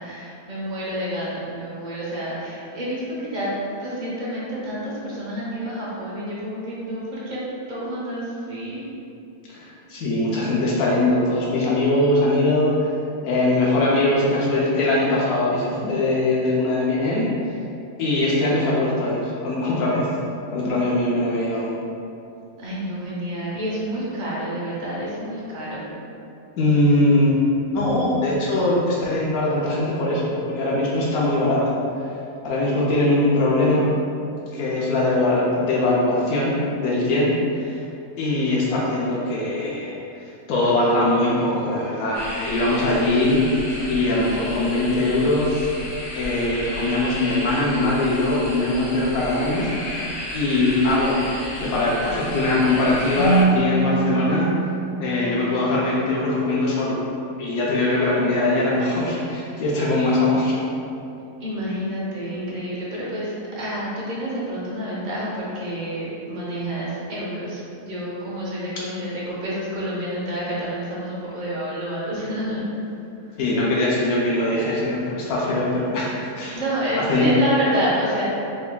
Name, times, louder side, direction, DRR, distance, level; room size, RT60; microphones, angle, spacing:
voice 1, 0.0-3.5 3.8-7.4 7.7-8.9 22.6-25.8 61.4-73.0 73.3-73.4 76.5-78.2, equal, 40° right, -7 dB, 0.7 m, -29 dB
voice 2, 9.5-12.9 13.2-17.3 18.0-20.1 20.5-21.7 26.6-27.4 27.7-31.8 32.4-33.9 34.5-37.3 37.6-37.8 38.2-39.9 40.5-45.7 46.1-49.7 50.3-51.2 51.6-54.5 55.0-57.0 57.4-60.6 73.4-76.6 77.0-77.3, left 2 dB, 85° left, -5 dB, 1.0 m, -21 dB
sound 1, 42.1-53.4, left 1 dB, 60° left, 1.0 m, -33 dB
Keyboard (musical), 53.2-55.9, right 3 dB, 70° right, 1.1 m, -23 dB
3.7 x 3.3 x 2.2 m, 2.7 s
omnidirectional pair, 1.5 m